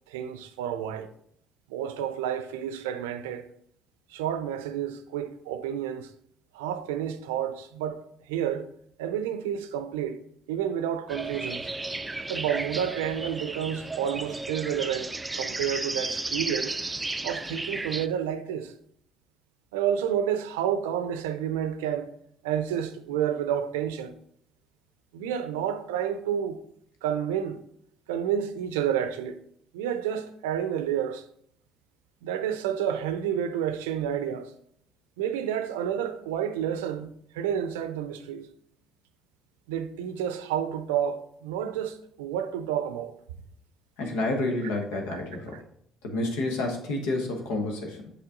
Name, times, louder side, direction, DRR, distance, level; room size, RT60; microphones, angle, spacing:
voice 1, 0.1-1.1 1.7-3.5 4.1-6.1 6.5-8.7 9.0-10.2 10.5-11.7 12.3-16.8 17.2-18.7 19.7-22.1 22.4-24.1 25.1-26.6 27.0-27.6 28.1-29.4 29.7-31.2 32.2-34.5 35.2-38.5 39.7-43.1 45.1-45.2, right 9 dB, 85° right, 0.5 m, -30 dB
sound 1, 11.1-18.1, right 2 dB, 20° right, 0.4 m, -34 dB
voice 2, 44.0-45.6 46.0-48.1, left 2 dB, 80° left, 1.2 m, -29 dB
7.9 x 4.3 x 3.8 m
hypercardioid pair, 55°, 0 cm